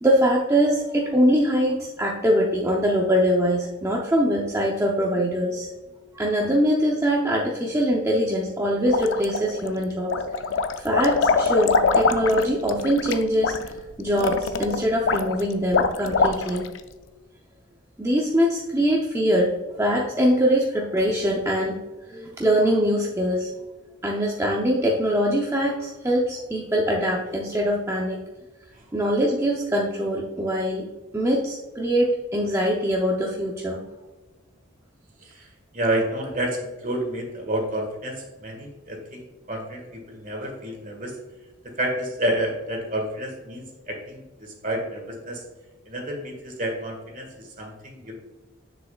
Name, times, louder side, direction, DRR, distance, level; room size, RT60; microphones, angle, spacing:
voice 1, 0.0-5.7 6.1-10.2 10.7-13.7 14.0-16.7 18.0-19.5 19.8-21.8 22.1-23.5 24.0-28.2 28.9-30.9 31.1-33.8, equal, 15° right, -2 dB, 0.6 m, -23 dB
sound 1, 8.9-9.7 10.1-16.8, left 4 dB, 65° left, 0.5 m, -23 dB
voice 2, 35.7-41.2 41.6-45.4 45.9-48.1, right 1 dB, 40° right, 2 dB, 1.7 m, -30 dB
7.4 x 6.6 x 2.3 m, 1.2 s
head